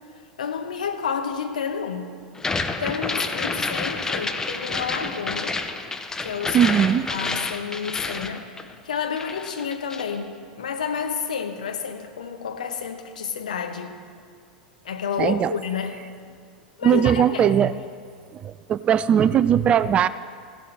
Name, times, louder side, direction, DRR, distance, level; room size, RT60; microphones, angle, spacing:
voice 1, 0.4-2.2 2.8-5.6 6.2-6.7 7.1-8.5 8.8-13.9 14.8-16.0 16.8-17.6, left 6 dB, 65° left, 6 dB, 1.1 m, -30 dB
sound 1, 2.4-8.9 9.2-10.2, left 3 dB, 10° left, 0.7 m, -29 dB
voice 2, 6.5-7.1 15.2-15.5 16.8-17.7 18.3-20.1, right 9 dB, 25° right, 16 dB, 0.3 m, -19 dB
15.5 x 10.5 x 4.1 m, 2.1 s
figure-of-eight pair, 85°, 4 cm